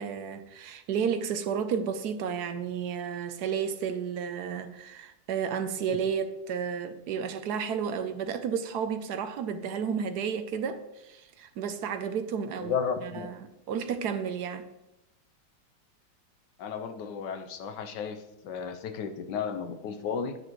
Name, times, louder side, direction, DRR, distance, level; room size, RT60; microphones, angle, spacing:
voice 1, 0.0-12.7 13.0-14.7, right 7 dB, 70° right, 1.1 m, -32 dB
voice 2, 12.6-13.3 16.6-20.4, left 6 dB, 80° left, 1.4 m, -33 dB
10.0 x 9.7 x 3.1 m
omnidirectional pair, 1.9 m